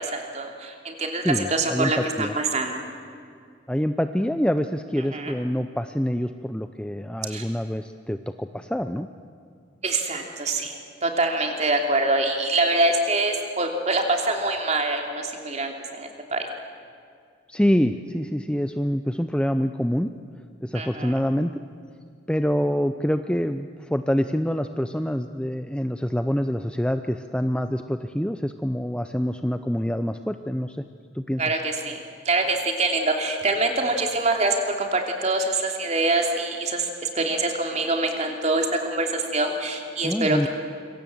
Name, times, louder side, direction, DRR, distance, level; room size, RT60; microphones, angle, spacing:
voice 1, 0.0-2.8 5.1-5.3 7.3-7.4 9.8-16.5 20.7-21.2 31.4-32.0 32.2-40.5, right 2 dB, 35° right, 3 dB, 3.0 m, -25 dB
voice 2, 1.2-2.4 3.7-9.1 17.5-20.1 20.6-21.5 22.3-30.8 31.1-31.4 40.0-40.5, equal, 5° left, 9 dB, 0.6 m, -26 dB
26.0 x 24.0 x 7.9 m, 2.2 s
head